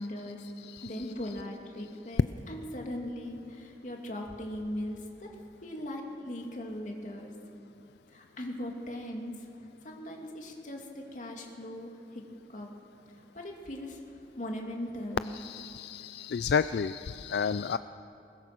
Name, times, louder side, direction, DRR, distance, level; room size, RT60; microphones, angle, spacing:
voice 1, 0.0-0.4 0.8-5.3 5.6-7.3 8.1-9.3 9.8-12.2 12.5-12.7 13.3-14.0 14.4-15.3, left 1 dB, 45° left, 1 dB, 2.6 m, -39 dB
voice 2, 0.6-0.9 15.3-17.8, left 6 dB, 70° left, 13 dB, 0.4 m, -31 dB
21.0 x 20.5 x 6.1 m, 2.8 s
head